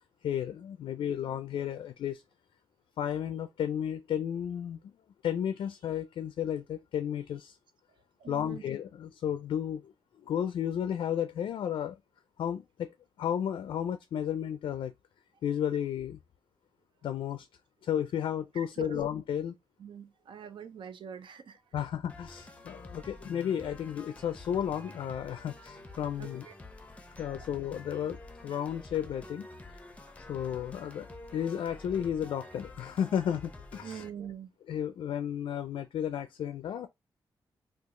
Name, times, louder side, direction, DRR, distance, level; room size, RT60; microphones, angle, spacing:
voice 1, 0.2-2.2 3.0-4.8 5.2-7.6 8.3-9.9 10.2-12.0 12.4-14.9 15.4-16.2 17.0-17.5 17.8-19.5 21.7-26.5 27.2-29.5 30.3-34.0 34.7-36.9, left 9 dB, 85° left, 0.3 m, -33 dB
voice 2, 8.2-8.6 18.6-19.1 19.8-21.6 22.7-22.8 26.2-26.5 33.8-34.5, right 8 dB, 70° right, 0.5 m, -43 dB
sound 1, 22.1-34.1, left 2 dB, 15° left, 0.6 m, -48 dB
2.9 x 2.3 x 3.6 m
cardioid pair, 90°, 9 cm